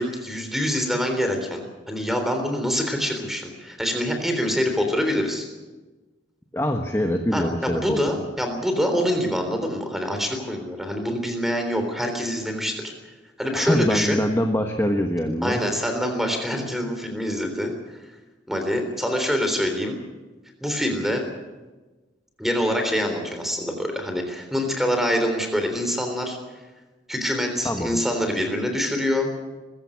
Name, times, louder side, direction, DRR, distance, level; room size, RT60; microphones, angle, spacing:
voice 1, 0.0-5.5 7.3-12.9 13.4-14.2 15.4-17.7 18.5-20.0 20.6-21.2 22.4-26.4 27.1-29.3, equal, ahead, 5 dB, 3.5 m, -25 dB
voice 2, 6.5-8.0 13.5-16.0 27.6-28.0, equal, 15° left, 3 dB, 1.2 m, -24 dB
21.0 x 16.0 x 8.5 m, 1.2 s
head